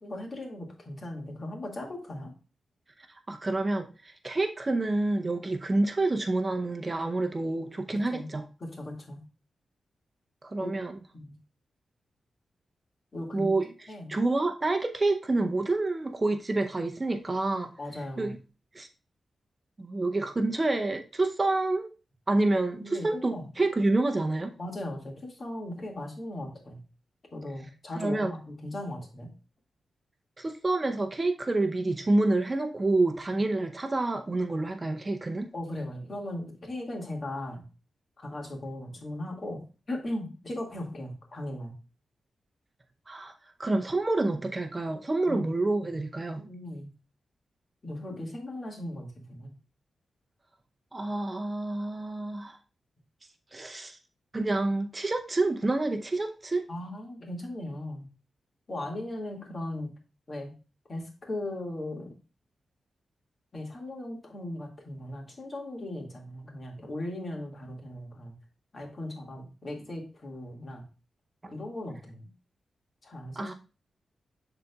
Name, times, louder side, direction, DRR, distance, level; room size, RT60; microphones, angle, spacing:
voice 1, 0.0-2.3 8.1-8.3 8.6-9.2 10.6-10.7 11.1-11.4 13.1-13.5 13.9-14.1 17.8-18.3 22.8-23.5 24.6-26.8 27.3-29.3 35.5-37.6 38.2-39.6 39.9-41.7 45.3-45.5 45.9-46.0 46.4-46.9 47.8-49.5 56.7-58.1 58.7-59.9 60.3-60.5 60.9-62.2 63.5-68.3 68.7-70.8 71.5-72.2 73.0-73.5, left 1 dB, 45° left, 1 dB, 2.0 m, -38 dB
voice 2, 3.3-8.4 10.4-11.0 13.3-13.7 14.1-17.7 18.2-18.3 18.7-18.9 19.8-21.9 22.3-24.5 28.0-28.3 30.4-35.5 43.1-43.3 43.6-46.4 50.9-52.6 53.5-54.0 54.3-56.6 71.4-71.5 73.4-73.5, right 2 dB, 30° right, 6 dB, 0.7 m, -28 dB
10.5 x 4.0 x 2.3 m, 0.34 s
cardioid pair, 75°, 0 cm